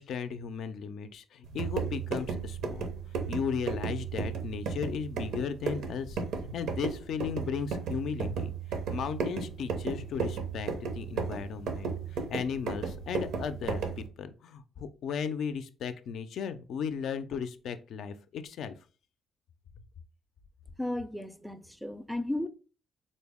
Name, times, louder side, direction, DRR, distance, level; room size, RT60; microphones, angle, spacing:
voice 1, 0.0-2.9 3.1-6.2 6.5-8.5 8.9-18.7, left 6 dB, 70° left, 0.3 m, -36 dB
sound 1, 1.4-14.1, right 5 dB, 85° right, 0.6 m, -34 dB
voice 2, 20.8-22.5, left 1 dB, ahead, 0.4 m, -34 dB
3.9 x 2.0 x 3.4 m
cardioid pair, 90°, 0 cm